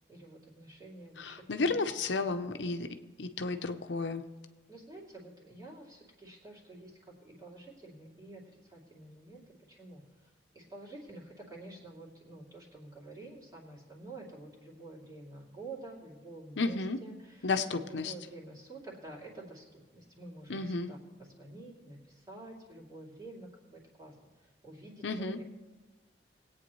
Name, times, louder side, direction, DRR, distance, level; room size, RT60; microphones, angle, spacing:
voice 1, 0.1-1.7 2.3-2.5 4.7-10.0 10.5-25.4, right 2 dB, 20° right, -4 dB, 2.7 m, -49 dB
voice 2, 1.2-2.9 3.2-4.2 16.6-17.0 17.4-18.1 20.5-20.9 25.0-25.4, left 3 dB, 85° left, 8 dB, 0.8 m, -32 dB
20.5 x 8.8 x 3.1 m, 1.3 s
head